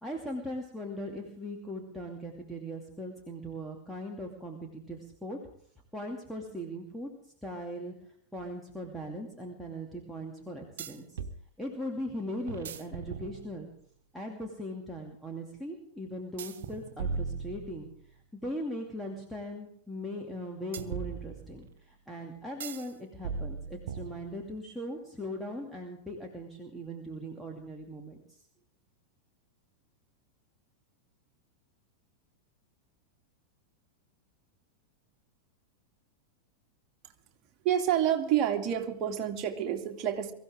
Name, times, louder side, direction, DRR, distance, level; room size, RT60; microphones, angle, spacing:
voice 1, 0.0-5.4 5.9-7.1 7.4-7.9 8.3-11.2 11.6-13.7 14.1-17.9 18.3-28.4, equal, ahead, 0 dB, 2.5 m, -39 dB
sound 1, 8.4-8.5 10.8-11.4 12.5-13.8 16.4-18.1 20.7-21.7 22.6-22.9 23.2-24.6, right 5 dB, 60° right, 1.1 m, -38 dB
voice 2, 37.6-40.3, right 10 dB, 35° right, 4 dB, 2.4 m, -28 dB
23.0 x 15.0 x 3.7 m, 0.63 s
figure-of-eight pair, 90°, 0 cm